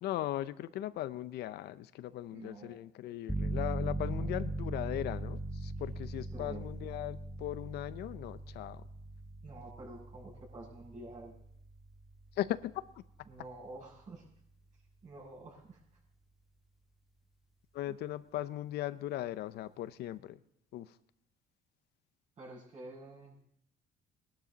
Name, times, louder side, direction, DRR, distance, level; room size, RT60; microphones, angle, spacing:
voice 1, 0.0-8.9 12.3-13.0 17.7-20.4 20.7-21.0, left 13 dB, 75° left, 15 dB, 0.7 m, -38 dB
voice 2, 2.3-2.8 3.9-4.3 6.3-6.6 9.4-11.3 13.3-14.2 15.0-15.8 17.8-17.9 22.4-23.4, right 2 dB, 45° right, -4 dB, 6.2 m, -49 dB
sound 1, 3.3-13.8, right 2 dB, ahead, 0.6 m, -40 dB
20.0 x 12.0 x 4.1 m, 0.72 s
cardioid pair, 110°, 17 cm